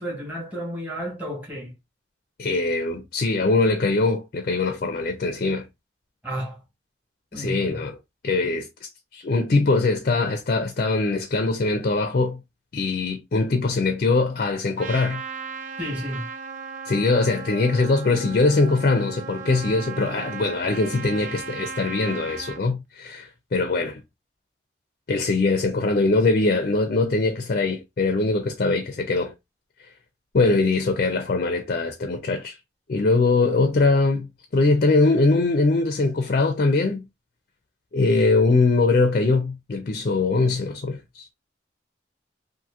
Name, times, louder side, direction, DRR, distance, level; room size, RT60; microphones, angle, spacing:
voice 1, 0.0-1.7 6.2-6.6 7.3-7.8 15.8-16.3, equal, 10° right, 1.3 m, -32 dB
voice 2, 2.4-5.7 7.4-7.9 8.2-12.4 12.7-15.2 16.9-24.0 25.1-29.3 30.3-32.6 32.9-34.3 34.5-37.0 37.9-41.3, left 3 dB, 50° left, 0.4 m, -22 dB
Trumpet, 14.8-22.6, right 6 dB, 45° right, 0.3 m, -36 dB
2.8 x 2.5 x 2.4 m
head